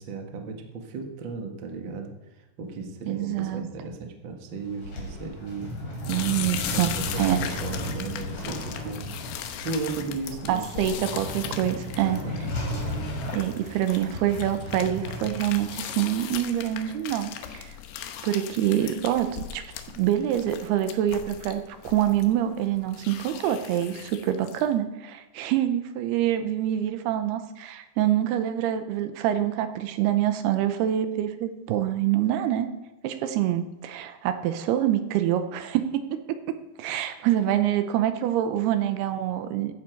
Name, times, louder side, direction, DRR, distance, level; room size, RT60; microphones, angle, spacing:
voice 1, 0.0-6.1 6.7-9.0 9.6-10.9 12.0-12.5, right 4 dB, 60° right, 3 dB, 1.3 m, -35 dB
voice 2, 3.1-3.6 6.1-6.9 7.2-7.4 10.5-12.2 13.3-17.8 18.2-19.6 20.0-32.7 33.0-39.7, right 11 dB, 80° right, 9 dB, 2.7 m, -26 dB
sound 1, 4.5-16.4, left 1 dB, 40° left, 4.2 m, -35 dB
sound 2, 6.0-24.7, left 10 dB, 85° left, 3.0 m, -38 dB
15.0 x 10.0 x 4.6 m, 1.1 s
omnidirectional pair, 4.8 m